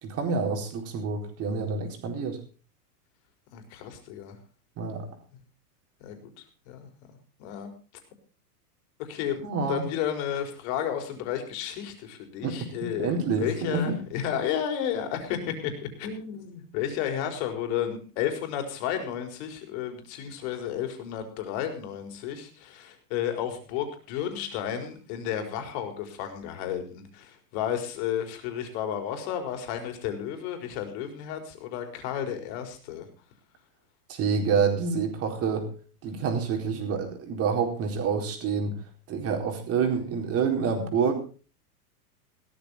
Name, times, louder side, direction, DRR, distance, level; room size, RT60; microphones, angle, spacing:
voice 1, 0.0-2.4 4.8-5.1 9.4-9.8 12.4-12.5 12.8-14.0 34.1-35.7 36.0-38.8 39.1-41.1, right 5 dB, 30° right, 3 dB, 4.3 m, -27 dB
voice 2, 3.5-4.4 6.0-7.1 7.4-7.7 9.0-9.4 9.7-13.1 13.4-33.1, left 9 dB, 45° left, 6 dB, 4.5 m, -32 dB
16.5 x 13.5 x 4.2 m, 0.36 s
supercardioid pair, 145°, 47 cm